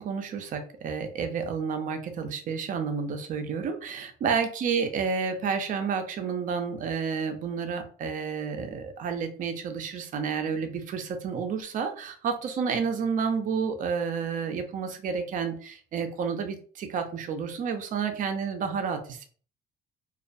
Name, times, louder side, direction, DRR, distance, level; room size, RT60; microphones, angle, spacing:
voice 1, 0.0-19.2, right 6 dB, 50° right, 7 dB, 0.5 m, -30 dB
2.3 x 2.1 x 2.5 m, 0.44 s
cardioid pair, 110°, 17 cm